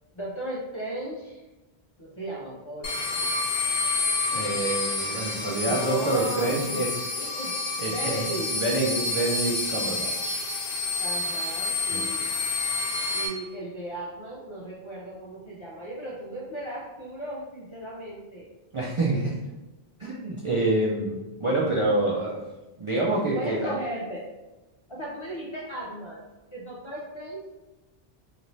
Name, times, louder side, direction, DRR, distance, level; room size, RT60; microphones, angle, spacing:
voice 1, 0.1-1.4 2.0-3.3 4.3-4.7 5.7-6.8 7.1-7.5 7.8-8.5 11.0-12.3 13.1-18.5 23.3-24.2 24.9-26.2 26.5-27.5, right 1 dB, 40° left, -6 dB, 0.4 m, -36 dB
sound 1, 2.8-13.3, left 3 dB, 70° left, 0.8 m, -29 dB
voice 2, 4.3-6.9 7.8-10.4 11.9-12.0 18.7-19.4 20.0-22.4 22.8-23.7, right 2 dB, 45° right, -7 dB, 0.4 m, -27 dB
2.6 x 2.5 x 3.1 m, 1.1 s
omnidirectional pair, 1.1 m